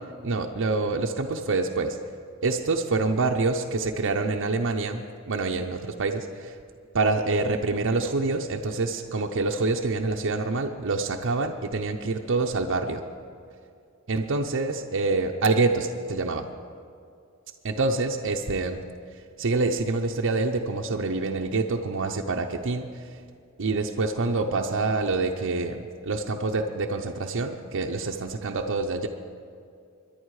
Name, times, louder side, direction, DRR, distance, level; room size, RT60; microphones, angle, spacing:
voice 1, 0.2-2.0 2.4-6.6 6.9-13.0 14.1-16.5 17.6-18.9 19.4-22.9 23.6-29.1, right 3 dB, 60° right, 2 dB, 0.7 m, -26 dB
23.0 x 10.5 x 4.8 m, 2.4 s
head